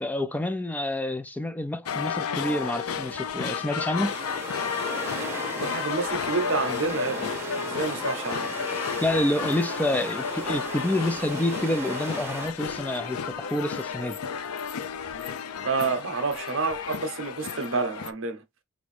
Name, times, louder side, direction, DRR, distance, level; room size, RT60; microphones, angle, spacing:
voice 1, 0.0-4.1 9.0-14.2, left 1 dB, 5° left, 0.3 m, -28 dB
sound 1, 1.9-18.1, left 6 dB, 80° left, 0.5 m, -32 dB
sound 2, 4.0-12.5, right 2 dB, 10° right, 0.9 m, -37 dB
voice 2, 5.6-8.5 15.6-18.4, right 4 dB, 60° right, 0.8 m, -29 dB
4.9 x 2.6 x 3.2 m
head